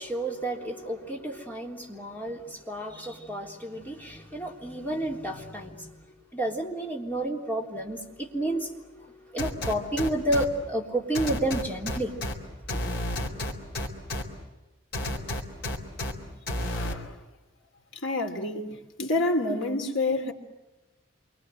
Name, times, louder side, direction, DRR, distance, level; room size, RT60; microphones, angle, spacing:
voice 1, 0.0-6.1 6.3-9.1 9.3-12.2 12.7-12.8, right 1 dB, 10° left, 3.5 m, -31 dB
sound 1, 9.4-10.4 11.1-12.3 12.7-14.2 14.9-16.1 16.5-16.9, left 1 dB, 55° left, 4.1 m, -30 dB
voice 2, 16.6-17.1 18.0-20.3, left 2 dB, 70° left, 3.4 m, -28 dB
28.5 x 24.5 x 7.8 m
head